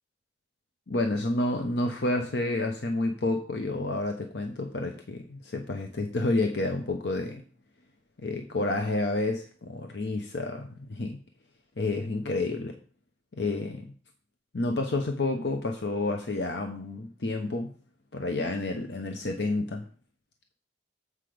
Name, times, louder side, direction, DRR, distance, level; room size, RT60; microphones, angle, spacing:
voice 1, 0.9-7.4 8.2-11.2 11.8-12.8 13.3-13.9 14.5-17.7 18.1-19.8, left 2 dB, 75° left, 4 dB, 0.8 m, -29 dB
7.8 x 4.9 x 5.0 m, 0.42 s
head